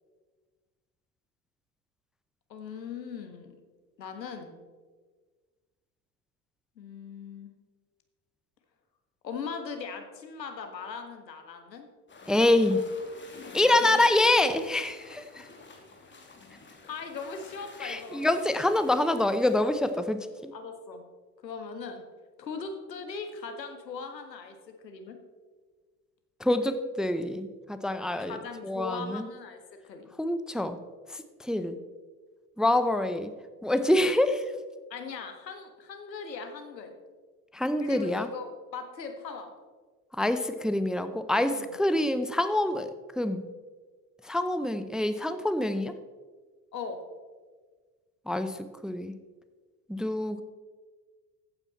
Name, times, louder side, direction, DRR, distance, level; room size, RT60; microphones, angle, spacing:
voice 1, 2.5-3.5 4.0-4.6 6.8-7.5 9.2-11.9 13.8-14.0 16.9-18.2 20.5-21.0 21.4-22.0 22.4-24.5 24.8-25.2 28.2-30.1 34.9-36.9 37.8-39.5 41.5-41.8 46.7-47.0, left 5 dB, 85° left, 6 dB, 1.6 m, -39 dB
sound 1, 12.1-19.9, left 3 dB, 20° left, 2.7 m, -49 dB
voice 2, 12.3-12.8 13.5-15.4 17.8-20.5 26.4-28.4 28.6-29.2 30.2-30.8 31.5-31.8 32.6-33.3 33.6-34.4 37.5-38.3 40.2-42.9 43.2-43.4 44.3-45.9 48.3-48.6 48.8-49.1 49.9-50.4, left 1 dB, ahead, 10 dB, 0.6 m, -26 dB
14.5 x 9.0 x 4.2 m, 1.4 s
hypercardioid pair, 75°, 49 cm